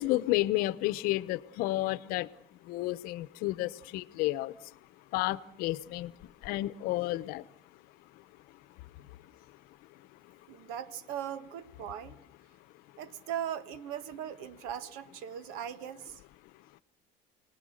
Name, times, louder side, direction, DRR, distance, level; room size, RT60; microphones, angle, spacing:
voice 1, 0.0-2.3 2.6-4.5 5.1-6.1 6.4-7.4, left 17 dB, 70° left, 0.9 m, -31 dB
voice 2, 10.5-12.2 13.0-16.2, right 9 dB, 75° right, 1.3 m, -39 dB
29.5 x 19.5 x 6.4 m
cardioid pair, 130°, 16 cm